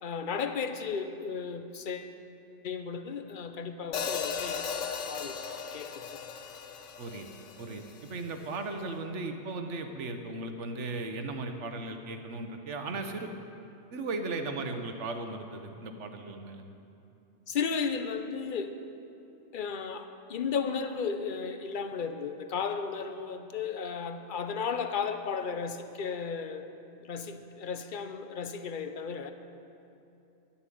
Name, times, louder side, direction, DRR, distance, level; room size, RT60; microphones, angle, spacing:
voice 1, 0.0-2.1 2.6-5.3 5.7-6.2 17.5-18.8 19.5-26.7 27.0-29.3, left 6 dB, 50° left, 8 dB, 0.8 m, -34 dB
Hi-hat, 3.9-8.1, left 6 dB, 80° left, 1.1 m, -36 dB
voice 2, 7.6-13.3 13.9-16.6, right 3 dB, 70° right, 6 dB, 1.3 m, -37 dB
11.5 x 7.0 x 9.2 m, 2.7 s
omnidirectional pair, 1.3 m